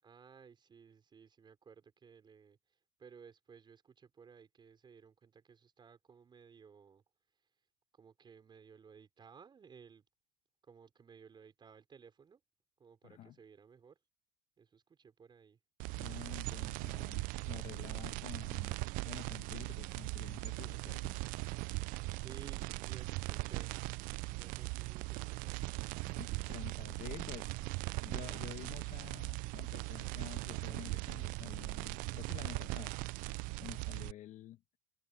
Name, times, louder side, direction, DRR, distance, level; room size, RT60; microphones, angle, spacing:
voice 1, 0.0-7.0 7.9-10.0 10.6-12.4 12.8-14.0 14.6-15.6 22.1-23.7 24.3-25.8, right 6 dB, 25° right, 5.0 m, -58 dB
voice 2, 13.0-13.4 16.0-18.8 19.1-21.2 26.0-27.5 28.0-33.0 33.6-34.6, left 13 dB, 45° left, 1.2 m, -50 dB
sound 1, 15.8-34.1, right 25 dB, 55° right, 0.4 m, -40 dB
supercardioid pair, 100°, 17 cm